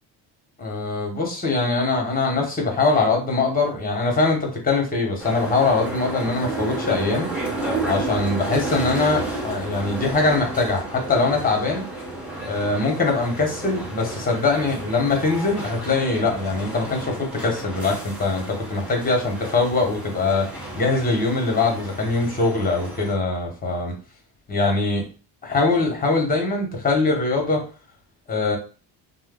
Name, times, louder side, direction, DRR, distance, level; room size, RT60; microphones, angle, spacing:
voice 1, 0.6-7.3 7.8-11.8 12.5-20.5 20.7-23.9 24.5-25.0 25.4-27.6 28.3-28.6, left 3 dB, 20° left, 2 dB, 1.0 m, -22 dB
sound 1, 5.2-23.1, right 2 dB, 5° right, 0.8 m, -32 dB
2.5 x 2.0 x 3.6 m, 0.36 s
cardioid pair, 105°, 42 cm